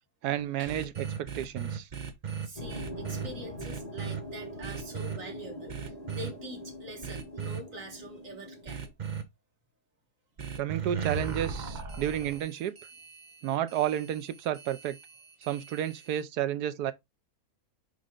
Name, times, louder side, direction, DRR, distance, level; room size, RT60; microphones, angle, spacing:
voice 1, 0.2-1.9 10.6-12.8 13.4-15.0 15.4-16.9, right 11 dB, 85° right, 1.3 m, -31 dB
sound 1, 0.7-3.3 3.6-4.2 4.6-5.2 5.7-6.3 7.0-7.6 8.7-9.2 10.4-16.2, right 7 dB, 35° right, 0.9 m, -37 dB
voice 2, 2.4-8.8, right 1 dB, 55° right, 2.5 m, -45 dB
sound 2, 2.6-8.9, left 1 dB, 25° left, 1.7 m, -43 dB
5.5 x 4.9 x 3.7 m
omnidirectional pair, 1.7 m